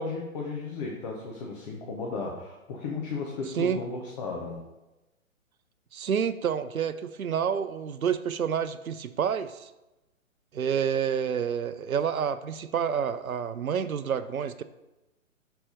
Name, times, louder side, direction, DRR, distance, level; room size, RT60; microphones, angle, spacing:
voice 1, 0.0-4.6, left 4 dB, 30° left, -2 dB, 1.1 m, -34 dB
voice 2, 5.9-9.7 10.5-14.6, right 7 dB, 85° right, 12 dB, 0.6 m, -28 dB
6.1 x 4.5 x 5.2 m, 1.0 s
figure-of-eight pair, 125°, 41 cm